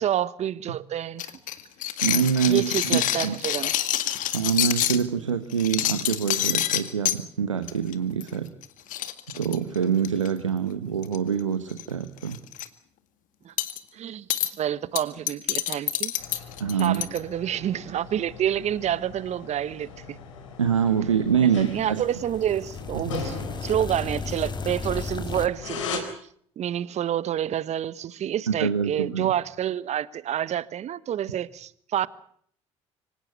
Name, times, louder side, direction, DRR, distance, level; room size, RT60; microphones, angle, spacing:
voice 1, 0.0-1.3 2.5-3.7 13.4-13.5 13.9-16.1 16.8-20.2 21.4-26.1 26.6-32.1, right 10 dB, 45° right, 1.1 m, -28 dB
sound 1, 1.2-5.0 5.5-7.2 7.7-7.9 8.2-8.3 8.6-8.7 8.9-10.3 11.0-11.4 11.7-11.9 12.2-12.7 13.6-13.8 14.3-14.5 15.0-17.2, left 13 dB, 55° left, 1.9 m, -27 dB
voice 2, 2.0-3.4 4.3-8.5 9.4-12.4 16.6-17.0 20.6-22.0 22.9-23.0 28.5-29.3, right 7 dB, 90° right, 1.0 m, -25 dB
sound 2, 16.2-26.0, left 5 dB, 80° left, 4.0 m, -40 dB
sound 3, 21.6-25.5, left 4 dB, 30° left, 2.1 m, -35 dB
25.0 x 17.5 x 8.3 m
figure-of-eight pair, 60°, 16 cm